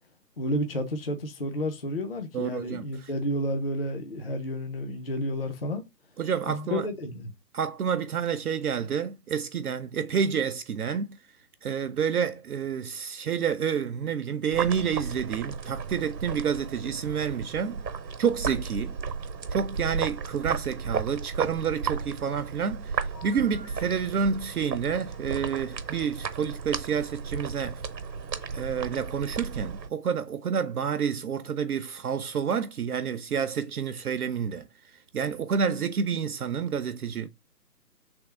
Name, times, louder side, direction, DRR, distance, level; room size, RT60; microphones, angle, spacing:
voice 1, 0.4-5.8 6.5-7.3, equal, 40° left, 0.5 m, -31 dB
voice 2, 2.3-2.9 6.2-6.9 7.5-11.2 11.6-17.8 18.2-19.0 19.5-22.9 23.2-27.8 28.5-34.7 35.1-37.3, right 7 dB, 65° right, 0.5 m, -29 dB
sound 1, 14.5-29.9, right 5 dB, 85° right, 0.9 m, -34 dB
Telephone, 23.1-24.0 25.1-27.2 28.1-29.5, left 2 dB, 80° left, 2.0 m, -53 dB
3.5 x 3.2 x 4.6 m
figure-of-eight pair, 155°, 50 cm